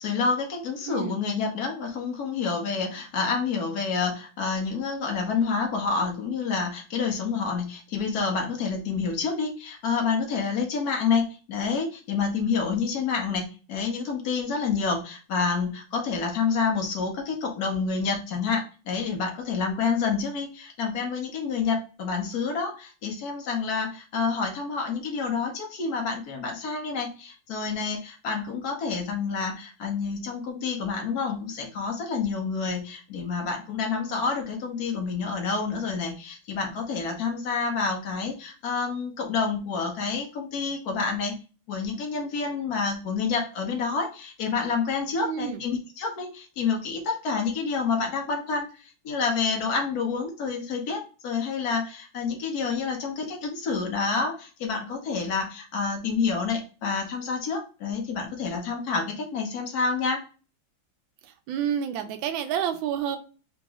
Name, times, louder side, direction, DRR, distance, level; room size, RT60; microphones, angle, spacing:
voice 1, 0.0-41.3 41.7-48.7 49.0-60.2, left 5 dB, 55° left, 2 dB, 1.4 m, -28 dB
voice 2, 0.8-1.2 45.2-45.6 61.2-63.2, right 9 dB, 80° right, 7 dB, 1.4 m, -29 dB
4.0 x 3.0 x 3.5 m, 0.35 s
omnidirectional pair, 2.2 m